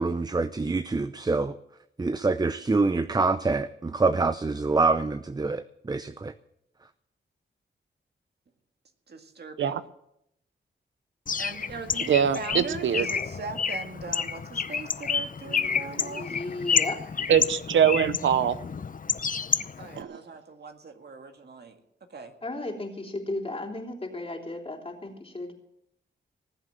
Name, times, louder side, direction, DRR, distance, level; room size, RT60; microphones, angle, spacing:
voice 1, 0.0-1.6 2.0-6.3, right 3 dB, 20° right, 12 dB, 0.6 m, -26 dB
voice 2, 9.1-9.9 11.4-16.4 16.7-16.8 19.8-21.8 22.1-22.3, right 4 dB, 60° right, 5 dB, 2.0 m, -40 dB
Bird, 11.3-20.0, left 6 dB, 45° left, 0.7 m, -30 dB
voice 3, 12.1-13.1 17.3-18.6 20.0-20.2, right 8 dB, 85° right, 14 dB, 0.7 m, -23 dB
voice 4, 15.4-17.0 22.4-25.5, left 2 dB, 30° left, 2 dB, 3.4 m, -35 dB
19.0 x 7.8 x 7.6 m, 0.78 s
cardioid pair, 65°, 19 cm